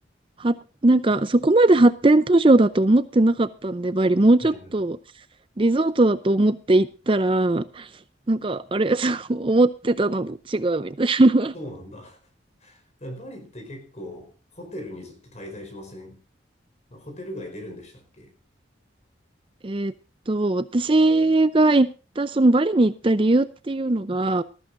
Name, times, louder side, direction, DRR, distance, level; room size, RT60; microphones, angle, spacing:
voice 1, 0.8-5.0 5.6-7.9 8.3-11.5 19.6-19.9 20.3-21.9 22.2-24.4, right 2 dB, 30° right, 0.5 m, -19 dB
voice 2, 4.4-4.9 11.5-12.2 12.6-16.2 16.9-18.4, left 1 dB, 35° left, 4.7 m, -39 dB
19.0 x 14.0 x 2.6 m
head